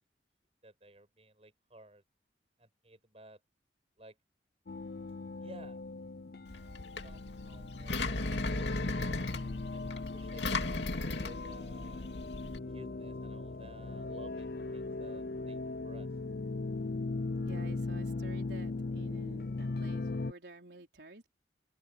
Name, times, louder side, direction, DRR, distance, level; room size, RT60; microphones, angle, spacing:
voice 1, 0.6-2.0 2.6-3.4 4.0-4.2 5.4-5.8 7.0-9.2 9.7-12.1 12.7-16.1, right 1 dB, 35° right, 6.5 m, -55 dB
sound 1, 4.7-20.3, left 3 dB, 55° left, 0.6 m, -39 dB
Engine, 6.5-12.6, left 2 dB, 80° left, 2.5 m, -37 dB
voice 2, 17.4-21.3, right 2 dB, 75° right, 4.1 m, -51 dB
open air
head